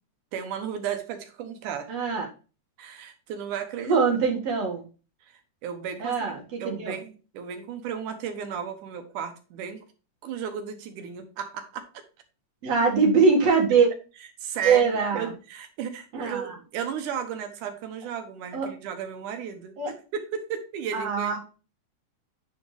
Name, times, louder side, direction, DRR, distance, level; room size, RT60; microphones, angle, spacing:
voice 1, 0.3-1.9 2.8-4.0 5.6-9.8 10.2-11.8 14.4-19.8 20.1-21.4, right 8 dB, 85° right, 7 dB, 2.5 m, -34 dB
voice 2, 1.9-2.3 3.8-4.8 6.0-7.0 12.6-13.9 14.6-15.3 16.1-16.6 18.5-18.7 19.8-19.9 20.9-21.4, right 5 dB, 60° right, -1 dB, 3.0 m, -23 dB
9.1 x 4.9 x 3.3 m, 0.34 s
omnidirectional pair, 3.5 m